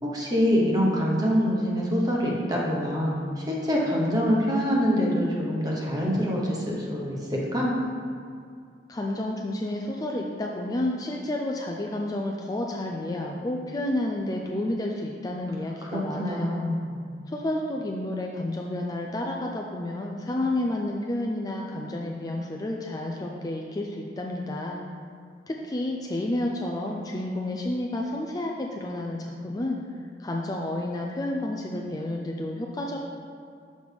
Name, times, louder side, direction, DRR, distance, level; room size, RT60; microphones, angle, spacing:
voice 1, 0.0-7.7 15.9-16.9, equal, 20° right, -3 dB, 1.0 m, -25 dB
voice 2, 8.9-16.7 17.3-24.8 25.5-29.8 30.2-33.0, left 1 dB, 20° left, 0 dB, 0.3 m, -30 dB
6.4 x 5.1 x 3.4 m, 2.4 s
head